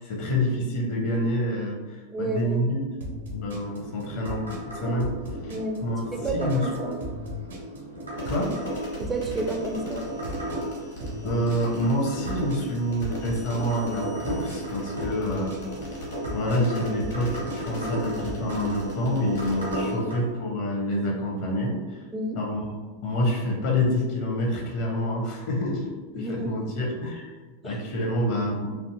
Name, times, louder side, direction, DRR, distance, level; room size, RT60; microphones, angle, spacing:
voice 1, 0.0-2.9 3.3-5.2 5.4-5.5 5.8-6.0 6.3-6.7 8.3-8.5 11.2-15.6 16.3-22.0 22.3-22.7 23.0-27.3 27.6-28.7, left 1 dB, 50° left, -1 dB, 0.8 m, -27 dB
voice 2, 2.1-2.6 5.5-5.8 6.1-7.0 9.0-10.1 22.1-22.4 26.1-26.7 27.6-27.8, right 2 dB, 15° right, 2 dB, 0.3 m, -30 dB
sound 1, 3.0-18.9, equal, 65° right, 0.6 m, -39 dB
sound 2, 3.4-20.2, right 1 dB, 85° right, 1.2 m, -35 dB
sound 3, 8.2-20.0, left 1 dB, 65° left, 1.3 m, -44 dB
3.3 x 2.5 x 2.9 m, 1.3 s
figure-of-eight pair, 90°, 0 cm